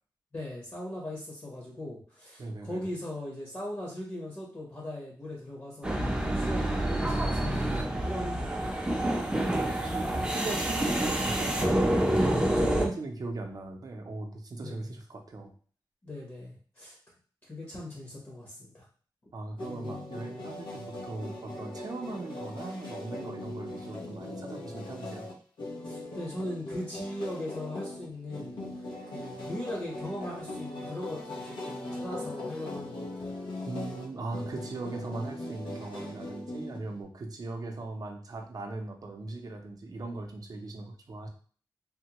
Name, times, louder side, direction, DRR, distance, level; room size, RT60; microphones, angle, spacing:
voice 1, 0.3-9.0 14.6-14.9 16.0-16.9 17.4-18.8 25.8-28.6 29.1-33.3, left 1 dB, 30° left, -3 dB, 0.9 m, -39 dB
voice 2, 2.4-2.8 8.8-9.2 9.6-15.5 19.3-25.3 28.9-29.2 30.2-30.4 31.1-31.3 32.1-33.0 33.7-41.3, right 2 dB, 50° right, 3 dB, 0.6 m, -39 dB
sound 1, 5.8-12.9, right 1 dB, 10° right, 0.6 m, -27 dB
sound 2, 19.6-37.0, left 1 dB, 85° left, 0.7 m, -40 dB
3.5 x 2.1 x 2.9 m, 0.44 s
wide cardioid pair, 135°, 8 cm